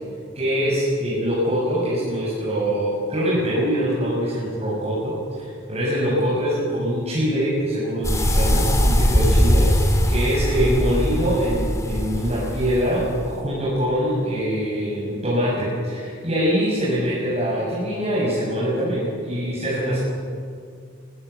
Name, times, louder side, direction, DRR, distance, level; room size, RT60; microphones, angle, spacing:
voice 1, 0.3-9.6 10.1-20.0, equal, 35° right, -7 dB, 6.6 m, -23 dB
sound 1, 8.0-13.4, equal, 15° left, 2.8 m, -21 dB
26.0 x 21.5 x 8.1 m, 2.2 s
head